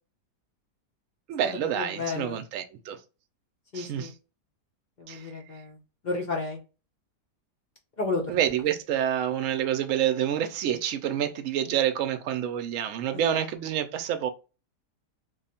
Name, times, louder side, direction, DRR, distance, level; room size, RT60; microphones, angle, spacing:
voice 1, 1.3-3.0 3.7-4.1 5.1-5.3 8.3-14.3, right 10 dB, 65° right, 0.8 m, -28 dB
voice 2, 2.0-2.4 3.7-4.1 5.0-5.8 6.0-6.6 8.0-8.2, left 3 dB, 55° left, 0.5 m, -31 dB
3.0 x 2.3 x 4.2 m
omnidirectional pair, 1.7 m